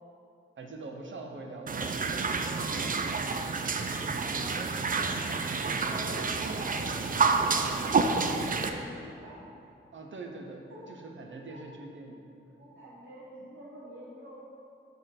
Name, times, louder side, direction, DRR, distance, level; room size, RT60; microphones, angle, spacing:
voice 1, 0.6-3.2 9.9-12.6, right 3 dB, 65° right, 3 dB, 0.7 m, -44 dB
sound 1, 1.7-8.7, right 4 dB, 40° right, 0.4 m, -29 dB
voice 2, 4.2-5.3 5.8-9.4 10.7-10.9 11.5-11.6 12.6-14.3, right 1 dB, 85° right, -8 dB, 1.2 m, -46 dB
6.5 x 3.5 x 5.8 m, 2.6 s
wide cardioid pair, 80°, 21 cm